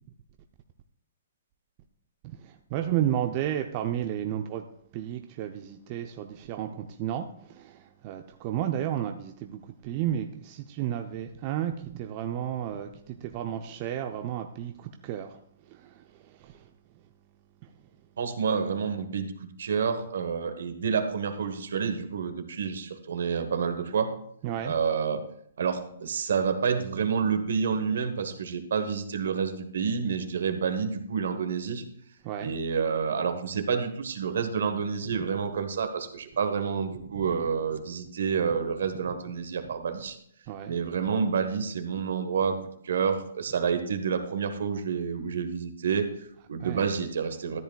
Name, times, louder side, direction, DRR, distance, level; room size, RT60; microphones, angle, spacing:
voice 1, 2.2-4.7 4.9-17.1 17.6-17.7 24.4-24.8 32.2-32.6 35.2-35.3 37.2-37.3 40.5-40.8 46.6-46.9, right 11 dB, 40° right, 0.7 m, -33 dB
voice 2, 18.2-24.1 24.6-25.2 25.6-31.8 32.4-40.2 40.7-42.6 42.8-47.6, right 6 dB, 65° right, 1.4 m, -29 dB
14.0 x 10.0 x 2.4 m
figure-of-eight pair, 125°, 0 cm